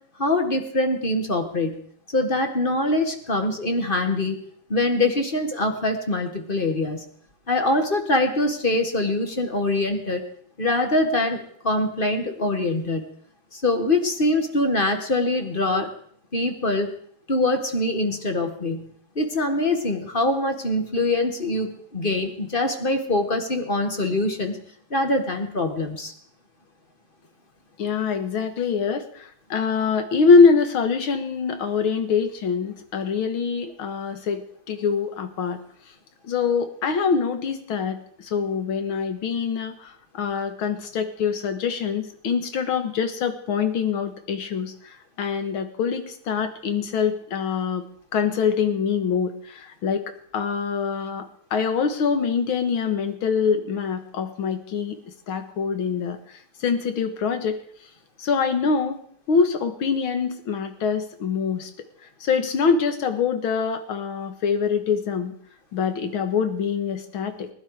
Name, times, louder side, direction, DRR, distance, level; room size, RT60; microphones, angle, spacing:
voice 1, 0.2-1.8 2.1-4.4 4.7-7.0 7.5-10.2 10.6-13.0 13.5-15.9 16.3-16.9 17.3-24.6 24.9-26.1, left 2 dB, 30° left, 6 dB, 1.6 m, -24 dB
voice 2, 27.8-35.6 36.2-47.8 48.1-55.0 55.3-57.6 58.2-59.0 59.3-61.7 62.2-65.3 65.7-67.5, left 5 dB, 85° left, 8 dB, 2.2 m, -24 dB
20.5 x 11.0 x 4.8 m, 0.62 s
omnidirectional pair, 2.2 m